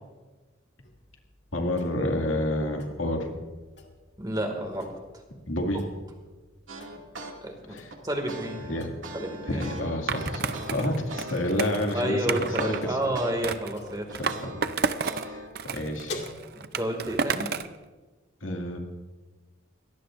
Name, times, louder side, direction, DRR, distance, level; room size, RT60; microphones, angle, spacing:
sound 1, 0.8-16.3, left 3 dB, 55° left, 2.1 m, -49 dB
voice 1, 1.5-3.5 5.5-5.8 7.7-7.9 8.7-8.9 9.5-12.3 12.6-13.1 14.2-14.5 15.2-15.5 15.7-16.2 18.4-18.8, left 1 dB, 85° left, 2 dB, 2.3 m, -29 dB
voice 2, 4.2-4.9 7.4-7.8 8.0-8.6 9.1-9.7 11.9-14.2 16.8-17.5, right 1 dB, 20° right, 3 dB, 2.2 m, -30 dB
sound 2, 6.7-7.3 7.7-13.3 13.7-15.5, right 2 dB, 80° right, 2.4 m, -40 dB
Skateboard, 10.1-12.8 13.4-15.3 15.5-17.8, right 5 dB, 50° right, 0.6 m, -31 dB
23.0 x 18.0 x 2.6 m, 1.3 s
head